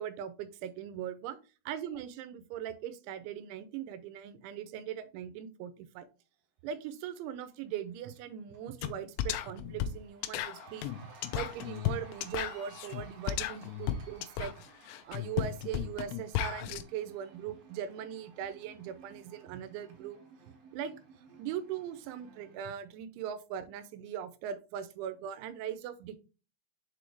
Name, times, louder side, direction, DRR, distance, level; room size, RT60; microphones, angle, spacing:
voice 1, 0.0-1.4 1.7-6.1 6.6-10.9 11.3-14.7 15.1-20.2 20.7-20.9 21.4-26.2, right 9 dB, 85° right, 12 dB, 3.1 m, -40 dB
Cheering, 8.0-8.2 8.5-22.6, right 4 dB, 65° right, 2.7 m, -56 dB
sound 1, 8.8-8.9 9.2-16.8, left 11 dB, 80° left, 2.6 m, -34 dB
7.2 x 4.2 x 3.3 m, 0.33 s
omnidirectional pair, 5.3 m